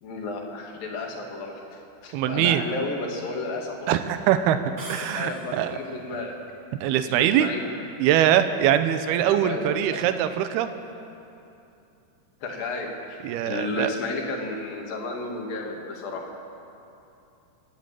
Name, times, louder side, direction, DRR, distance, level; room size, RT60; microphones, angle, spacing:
voice 1, 0.0-4.0 5.0-6.4 7.0-7.7 9.4-10.0 12.4-16.3, left 3 dB, 65° left, 0 dB, 3.9 m, -33 dB
voice 2, 2.1-2.6 3.9-5.8 6.8-7.5 8.0-10.7 13.2-13.9, right 11 dB, 85° right, 10 dB, 2.9 m, -22 dB
sound 1, 4.8-5.9, right 2 dB, 45° right, 4.1 m, -41 dB
25.0 x 12.0 x 9.0 m, 2.8 s
omnidirectional pair, 4.5 m